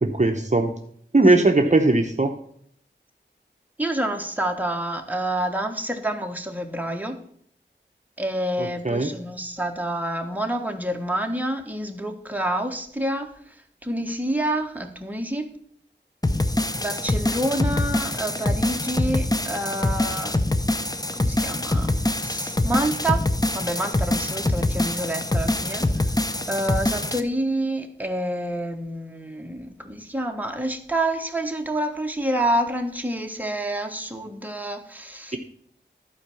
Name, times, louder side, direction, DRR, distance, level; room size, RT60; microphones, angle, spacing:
voice 1, 0.0-0.7 1.1-2.3 8.6-9.1, right 2 dB, 40° right, 4 dB, 0.8 m, -19 dB
voice 2, 1.4-1.8 3.8-7.2 8.2-13.5 13.8-15.4 16.8-20.4 21.1-21.9 22.2-23.2 23.5-25.9 26.5-35.4, right 1 dB, 10° right, 4 dB, 1.3 m, -28 dB
sound 1, 16.2-27.2, left 1 dB, 20° left, 0.7 m, -24 dB
11.5 x 4.6 x 7.0 m, 0.65 s
wide cardioid pair, 40°, 19 cm